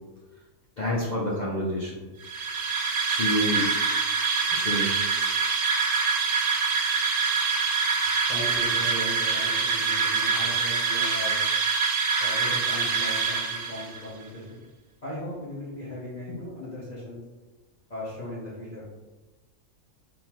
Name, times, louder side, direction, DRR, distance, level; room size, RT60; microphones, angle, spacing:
voice 1, 0.8-1.9 3.0-3.7 4.5-5.0, left 1 dB, 85° left, -6 dB, 0.4 m, -28 dB
sound 1, 2.2-14.0, right 5 dB, 80° right, 1.1 m, -25 dB
voice 2, 8.3-11.4 12.2-14.6 15.0-17.2 17.9-18.9, equal, 40° left, -8 dB, 0.7 m, -37 dB
3.8 x 2.6 x 2.9 m, 1.2 s
omnidirectional pair, 1.6 m